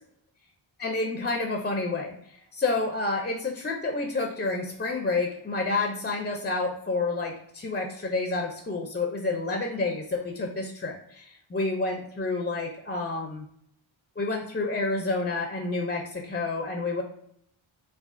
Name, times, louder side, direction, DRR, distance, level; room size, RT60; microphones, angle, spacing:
voice 1, 0.8-13.5 14.2-17.0, left 3 dB, 25° left, 2 dB, 0.4 m, -29 dB
4.8 x 2.4 x 2.4 m, 0.70 s
wide cardioid pair, 105°, 48 cm